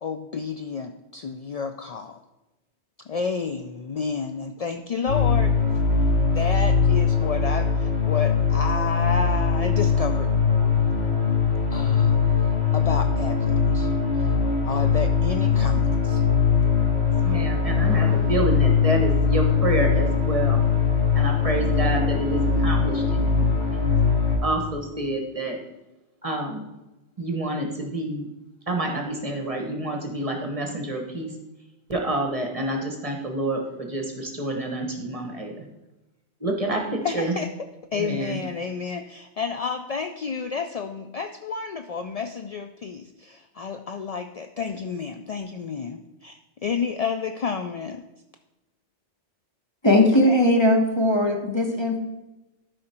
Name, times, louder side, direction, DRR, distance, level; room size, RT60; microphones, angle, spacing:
voice 1, 0.0-2.2 3.1-5.5 6.3-10.3 11.7-12.2 12.7-13.9 14.2-14.3 14.6-16.2 37.0-37.5 37.9-48.0, left 5 dB, 60° left, 6 dB, 0.4 m, -30 dB
sound 1, 5.1-24.4, left 5 dB, 90° left, 2.2 m, -21 dB
voice 2, 17.2-20.6 21.1-25.6 26.2-26.6 27.2-28.3 28.7-31.3 31.9-35.7 36.4-37.3 37.9-38.4, right 1 dB, 30° right, 2 dB, 1.2 m, -28 dB
voice 3, 49.8-52.0, left 1 dB, 25° left, 2 dB, 1.2 m, -19 dB
12.5 x 5.0 x 4.3 m, 1.0 s
omnidirectional pair, 1.2 m